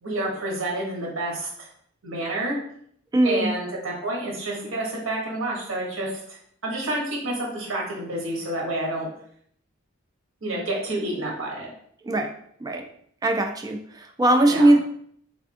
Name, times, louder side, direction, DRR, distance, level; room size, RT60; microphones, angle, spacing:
voice 1, 0.0-1.7 2.0-2.6 3.2-9.1 10.4-11.7 14.5-14.7, right 1 dB, 65° right, -3 dB, 1.1 m, -29 dB
voice 2, 3.1-3.5 12.0-12.3 12.6-12.8 13.2-14.8, right 1 dB, 15° right, 4 dB, 0.3 m, -20 dB
3.5 x 3.4 x 2.6 m, 0.65 s
head